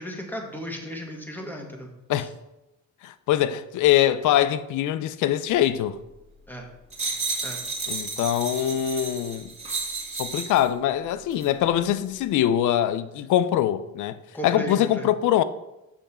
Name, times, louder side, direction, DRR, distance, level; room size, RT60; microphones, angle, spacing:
voice 1, 0.0-1.9 6.5-6.7 7.4-7.6 14.3-15.1, equal, 5° left, 1.7 m, -35 dB
voice 2, 3.0-6.0 7.9-9.5 10.2-14.2 14.4-15.4, left 11 dB, 80° left, 0.5 m, -23 dB
sound 1, 6.9-10.7 11.3-11.5, right 3 dB, 20° right, 2.2 m, -32 dB
7.1 x 5.4 x 4.3 m
cardioid pair, 90°, 30 cm